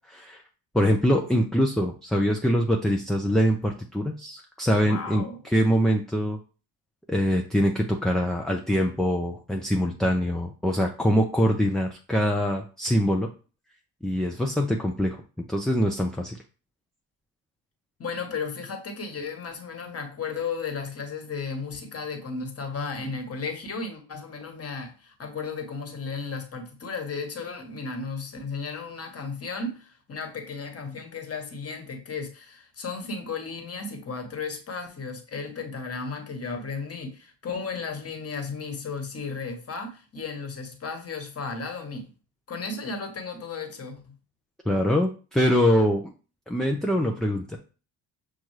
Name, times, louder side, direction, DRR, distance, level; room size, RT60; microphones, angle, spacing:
voice 1, 0.1-0.4 0.7-6.4 7.1-13.3 14.0-15.2 15.5-16.4 44.7-46.1 46.5-47.6, equal, ahead, 0.4 m, -24 dB
voice 2, 4.8-5.4 18.0-42.1 42.5-44.1, left 4 dB, 30° left, 1.3 m, -34 dB
6.2 x 2.3 x 3.1 m
hypercardioid pair, 55°, 47 cm